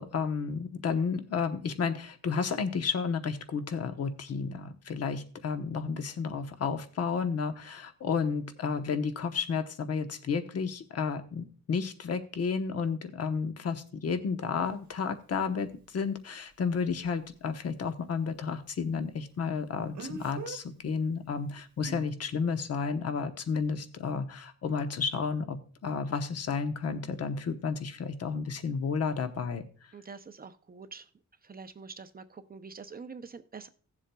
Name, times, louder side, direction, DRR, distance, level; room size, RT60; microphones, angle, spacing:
voice 1, 0.0-29.6, left 5 dB, 50° left, 8 dB, 1.0 m, -32 dB
Speech, 14.6-14.7 19.9-20.6 21.8-22.1, right 3 dB, 65° right, 1.3 m, -40 dB
voice 2, 29.9-31.1 31.4-33.7, right 5 dB, 30° right, 10 dB, 0.6 m, -45 dB
17.0 x 7.4 x 2.3 m, 0.43 s
wide cardioid pair, 135°, 31 cm